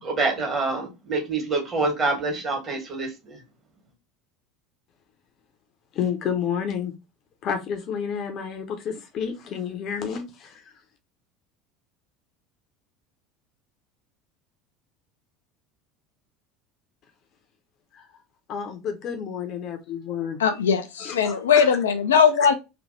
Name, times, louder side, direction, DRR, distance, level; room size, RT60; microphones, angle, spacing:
voice 1, 0.0-3.4, right 3 dB, 30° right, 1.7 m, -26 dB
voice 2, 5.9-6.9 7.4-10.7 17.9-18.0 18.5-20.4 21.0-21.7, left 7 dB, 45° left, 0.8 m, -30 dB
voice 3, 20.4-22.5, left 6 dB, 75° left, 0.5 m, -19 dB
3.3 x 2.6 x 4.0 m
figure-of-eight pair, 70°, 0 cm